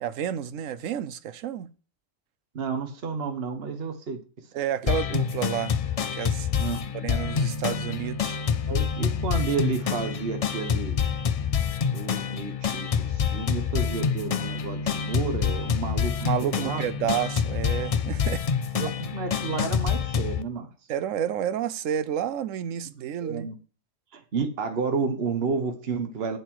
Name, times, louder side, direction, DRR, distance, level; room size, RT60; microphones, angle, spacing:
voice 1, 0.0-1.7 4.5-5.7 6.2-6.5 6.9-8.4 16.2-18.4 20.9-23.5, right 9 dB, 80° right, 1.0 m, -30 dB
voice 2, 2.5-4.4 4.8-4.9 6.5-7.1 8.7-11.0 11.9-16.8 18.7-20.7 23.2-23.6 24.1-26.4, right 5 dB, 50° right, 1.4 m, -31 dB
sound 1, 4.9-20.4, left 7 dB, 70° left, 0.3 m, -27 dB
8.0 x 7.8 x 4.6 m
omnidirectional pair, 1.3 m